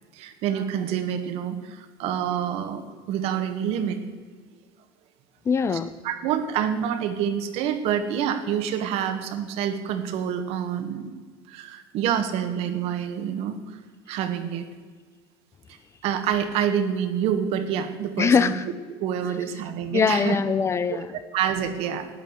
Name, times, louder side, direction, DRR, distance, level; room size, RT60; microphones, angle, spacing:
voice 1, 0.1-4.0 6.0-11.1 11.5-13.8 14.1-14.7 16.0-18.5 18.9-20.4 20.9-21.0 21.3-22.1, right 9 dB, 60° right, 8 dB, 1.6 m, -27 dB
voice 2, 5.5-5.9 18.2-18.6 19.9-21.1, left 6 dB, 25° left, 15 dB, 0.5 m, -22 dB
12.5 x 9.2 x 8.2 m, 1.5 s
cardioid pair, 145°, 12 cm